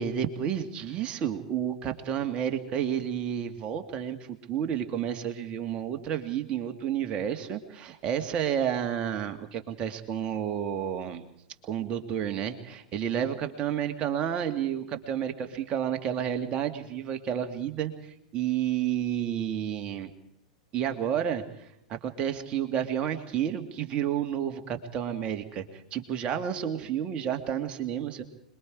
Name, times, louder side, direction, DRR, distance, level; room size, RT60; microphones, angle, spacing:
voice 1, 0.0-11.2 11.6-20.1 20.7-21.4 21.9-28.2, right 9 dB, 30° right, 6 dB, 2.2 m, -30 dB
26.5 x 22.0 x 4.9 m, 0.77 s
figure-of-eight pair, 90°, 4 cm